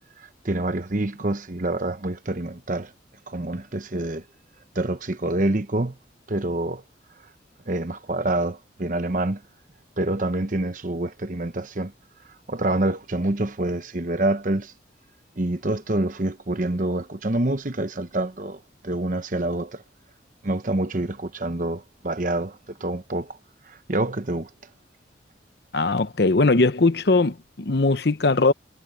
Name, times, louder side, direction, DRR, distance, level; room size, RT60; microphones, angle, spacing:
voice 1, 0.2-2.9 3.3-4.2 4.7-6.0 6.3-6.8 7.7-9.4 10.0-11.9 12.5-14.7 15.4-19.8 20.4-23.4 23.7-24.5, right 2 dB, 45° right, 1.0 m, -27 dB
voice 2, 25.7-28.5, left 3 dB, 60° left, 0.8 m, -20 dB
head